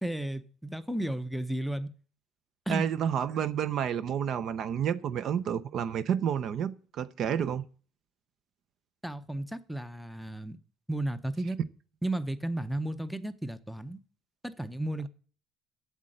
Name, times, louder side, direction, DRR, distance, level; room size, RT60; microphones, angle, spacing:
voice 1, 0.0-1.9 2.7-2.9 9.0-10.6 10.9-11.6 12.0-14.0 14.4-15.1, right 1 dB, ahead, 0.6 m, -33 dB
voice 2, 2.7-7.6, right 8 dB, 50° right, 0.5 m, -30 dB
8.1 x 7.4 x 7.7 m
cardioid pair, 140°, 0 cm